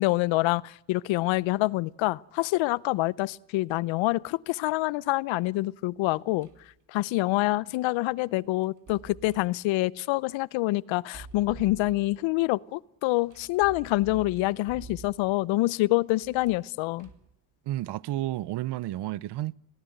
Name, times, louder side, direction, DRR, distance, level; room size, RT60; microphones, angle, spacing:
voice 1, 0.0-6.5 6.9-17.1, left 19 dB, 75° left, 0.8 m, -26 dB
sound 1, 6.4-6.7 8.6-9.5 11.0-12.3 13.3-15.5 16.2-17.4, right 4 dB, 40° right, 2.7 m, -48 dB
voice 2, 17.7-19.5, right 15 dB, 60° right, 0.8 m, -31 dB
26.0 x 18.5 x 7.9 m
supercardioid pair, 75°, 46 cm